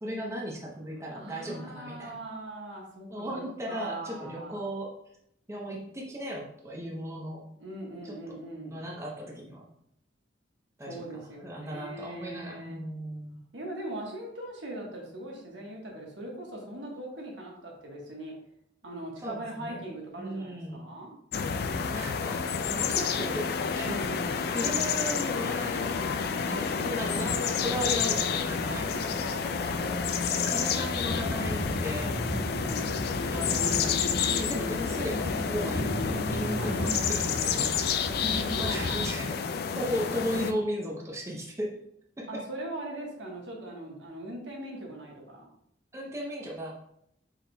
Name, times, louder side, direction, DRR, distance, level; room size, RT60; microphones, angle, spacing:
voice 1, 0.0-2.2 3.1-4.9 5.5-7.4 8.0-9.7 10.8-13.4 19.2-19.9 20.2-20.9 21.4-25.9 26.5-29.3 30.4-32.3 33.3-34.0 34.3-37.7 38.6-39.4 39.7-41.8 42.2-42.3 45.9-46.7, equal, 15° right, -2 dB, 0.7 m, -36 dB
voice 2, 1.1-4.6 7.6-8.8 10.9-12.8 13.5-18.3 18.8-21.1 23.9-24.4 28.7-30.0 32.2-33.0 36.6-37.0 38.0-39.0 42.3-45.5, right 1 dB, 80° right, -1 dB, 1.3 m, -40 dB
sound 1, 21.3-40.5, left 6 dB, 60° left, 0.3 m, -30 dB
sound 2, 28.5-39.0, left 1 dB, 25° left, 1.2 m, -36 dB
4.9 x 4.8 x 2.2 m, 0.73 s
head